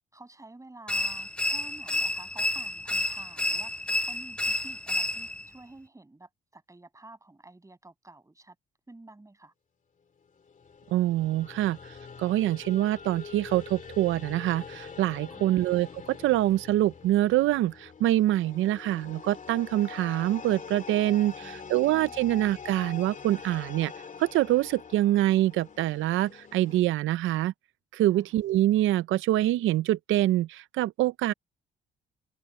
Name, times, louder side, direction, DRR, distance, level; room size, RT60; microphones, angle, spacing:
voice 1, 0.1-8.6 8.9-9.5 15.3-15.6 21.4-22.3 28.1-28.4, right 2 dB, 15° right, 7.6 m, -51 dB
sound 1, 0.9-5.5, left 1 dB, 5° left, 0.5 m, -30 dB
sound 2, 10.4-26.8, left 6 dB, 40° left, 2.5 m, -44 dB
voice 2, 10.9-11.8 12.2-23.9 24.2-27.5 27.9-31.3, right 14 dB, 85° right, 0.7 m, -25 dB
cardioid pair, 90°, 20 cm